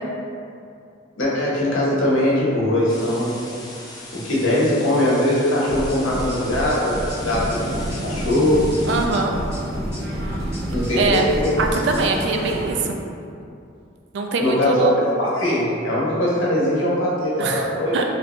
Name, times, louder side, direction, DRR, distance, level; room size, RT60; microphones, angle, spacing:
voice 1, 1.2-3.4 4.1-8.6 10.7-11.5 14.4-18.0, left 1 dB, 80° left, -7 dB, 0.9 m, -21 dB
sound 1, 2.9-9.1, left 2 dB, 20° left, 0.4 m, -39 dB
sound 2, 5.7-12.1, equal, 10° right, 1.2 m, -30 dB
sound 3, 7.2-12.8, right 1 dB, 80° right, 0.9 m, -30 dB
voice 2, 8.9-9.4 11.0-11.3 11.6-13.0 14.1-15.0 17.4-17.7 17.9-18.0, right 3 dB, 60° right, 2 dB, 0.3 m, -22 dB
3.2 x 2.6 x 2.9 m, 2.5 s
head